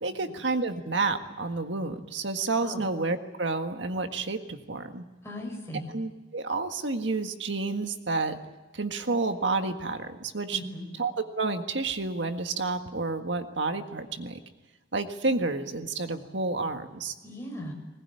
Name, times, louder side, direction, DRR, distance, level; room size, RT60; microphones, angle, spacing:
voice 1, 0.0-5.0 5.9-8.4 8.7-10.6 11.0-14.4 14.9-17.1, right 3 dB, 70° right, 6 dB, 1.7 m, -30 dB
voice 2, 5.2-5.9 10.5-10.9 17.2-17.7, left 1 dB, 15° left, 0 dB, 6.1 m, -38 dB
20.5 x 19.5 x 9.9 m, 1.2 s
head